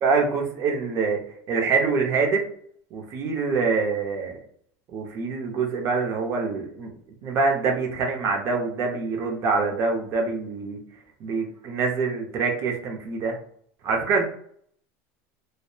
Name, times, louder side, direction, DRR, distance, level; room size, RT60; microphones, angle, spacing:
voice 1, 0.0-1.2 1.5-2.4 2.9-4.4 4.9-6.9 7.2-10.8 11.2-13.4 13.8-14.2, right 4 dB, 40° right, 1 dB, 0.6 m, -25 dB
2.8 x 2.0 x 2.2 m, 0.64 s
supercardioid pair, 145°, 8 cm